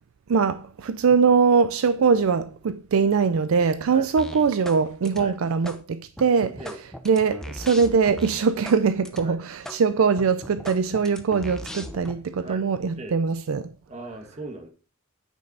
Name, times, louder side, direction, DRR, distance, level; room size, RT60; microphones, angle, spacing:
voice 1, 0.3-6.6 7.1-13.7, right 5 dB, 70° right, 0.4 m, -22 dB
sound 1, 4.2-4.8 5.0-5.8 6.2-8.8 9.0-9.2 9.6-9.8 10.2-12.1, equal, 5° left, 0.8 m, -38 dB
voice 2, 13.9-14.7, right 2 dB, 30° right, 1.3 m, -38 dB
9.2 x 5.3 x 3.9 m
head